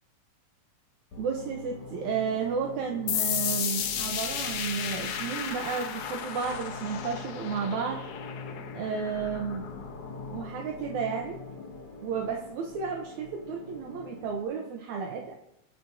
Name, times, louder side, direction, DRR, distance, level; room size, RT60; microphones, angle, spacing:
sound 1, 1.1-14.4, left 3 dB, 50° left, 2.9 m, -43 dB
voice 1, 1.2-8.0 8.7-9.7 10.3-11.4 12.0-15.3, right 6 dB, 80° right, 1 dB, 2.3 m, -32 dB
sound 2, 3.1-10.5, left 8 dB, 90° left, 2.4 m, -34 dB
18.0 x 7.3 x 2.7 m, 0.84 s
omnidirectional pair, 3.3 m